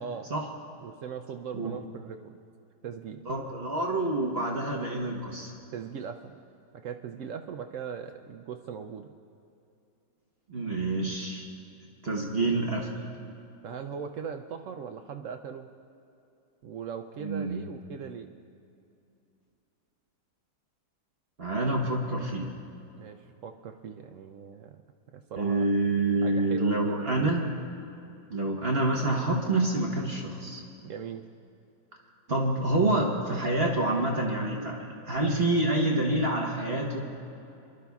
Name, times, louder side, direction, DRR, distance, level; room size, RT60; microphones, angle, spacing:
voice 1, 0.0-0.3 0.8-2.4 2.8-3.2 5.7-6.4 6.7-9.1 13.6-15.7 16.6-18.3 23.0-24.8 25.1-25.6 26.2-27.0 30.8-31.3, right 7 dB, 75° right, 6 dB, 0.7 m, -39 dB
voice 2, 3.2-5.5 10.5-11.5 12.0-12.9 17.2-17.6 21.4-22.6 25.4-27.5 28.3-30.6 32.3-37.0, right 2 dB, 40° right, -1 dB, 1.2 m, -27 dB
26.5 x 12.0 x 2.4 m, 2.7 s
omnidirectional pair, 1.9 m